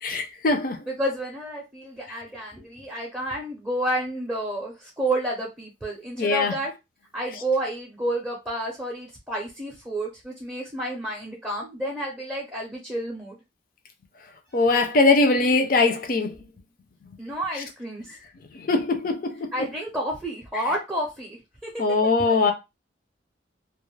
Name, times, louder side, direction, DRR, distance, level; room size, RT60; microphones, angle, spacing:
voice 1, 0.0-0.8 6.2-6.5 14.5-16.4 18.5-19.5 21.8-22.5, left 3 dB, 45° left, 0.5 m, -21 dB
voice 2, 0.9-6.7 7.1-13.4 17.2-18.2 19.5-21.8 22.2-22.4, right 1 dB, 10° right, 0.5 m, -30 dB
2.3 x 2.1 x 3.1 m
head